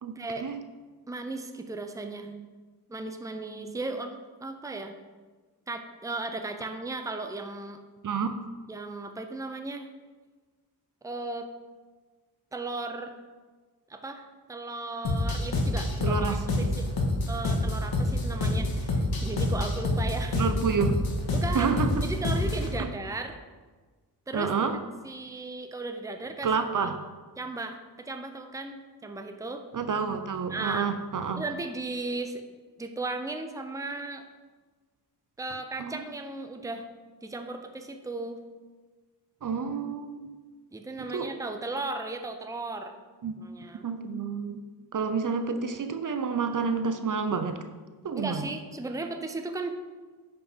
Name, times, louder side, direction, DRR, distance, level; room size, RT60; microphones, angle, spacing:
voice 1, 0.2-0.5 1.1-2.5 2.9-4.9 5.7-7.8 8.7-9.9 11.0-11.5 12.5-13.1 13.9-16.2 16.6-16.9 17.3-20.4 21.3-21.7 22.0-23.4 24.3-24.5 25.0-26.5 26.8-26.9 27.4-29.6 30.5-30.9 31.3-32.4 32.8-34.2 35.4-36.8 37.2-38.4 40.7-42.9 43.4-43.9 48.2-49.7, right 2 dB, 10° right, 6 dB, 0.6 m, -36 dB
sound 1, 15.0-22.7, left 2 dB, 60° left, 1.7 m, -27 dB
voice 2, 16.0-16.7 20.3-21.0 21.5-22.1 22.8-22.9 24.3-24.8 26.4-27.0 29.7-31.4 35.8-36.1 39.4-40.4 41.0-41.3 43.2-43.3 43.8-44.6 44.9-47.6 48.0-48.5, right 5 dB, 50° right, 8 dB, 0.7 m, -29 dB
9.9 x 5.5 x 4.5 m, 1.4 s
wide cardioid pair, 90°, 40 cm